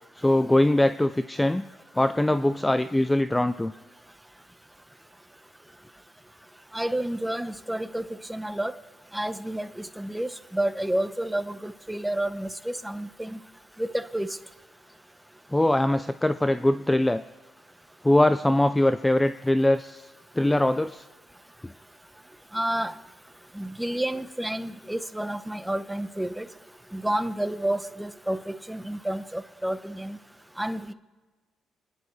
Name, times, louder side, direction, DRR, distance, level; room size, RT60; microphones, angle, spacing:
voice 1, 0.2-1.6 1.9-3.7 15.5-17.2 18.0-20.1 20.4-21.0 21.6-21.7, left 1 dB, 10° left, 11 dB, 0.4 m, -22 dB
voice 2, 6.7-8.7 9.1-13.4 13.8-14.3 22.5-22.9 23.5-26.5 26.9-30.2 30.6-30.9, right 1 dB, 5° right, 11 dB, 0.8 m, -30 dB
29.5 x 10.5 x 3.2 m, 1.3 s
cardioid pair, 90°, 0 cm